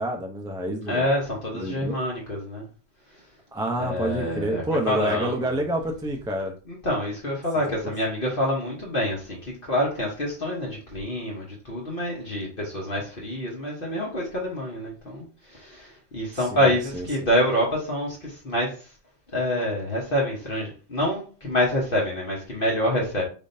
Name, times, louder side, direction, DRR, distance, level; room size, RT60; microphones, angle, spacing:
voice 1, 0.0-1.1 1.5-2.0 3.5-6.5 7.8-7.9 16.5-17.1, right 1 dB, 5° right, 2 dB, 0.3 m, -28 dB
voice 2, 0.9-2.7 3.8-5.5 6.7-18.9 19.3-23.2, equal, 45° left, -3 dB, 1.3 m, -27 dB
5.1 x 3.5 x 2.7 m, 0.37 s
omnidirectional pair, 1.3 m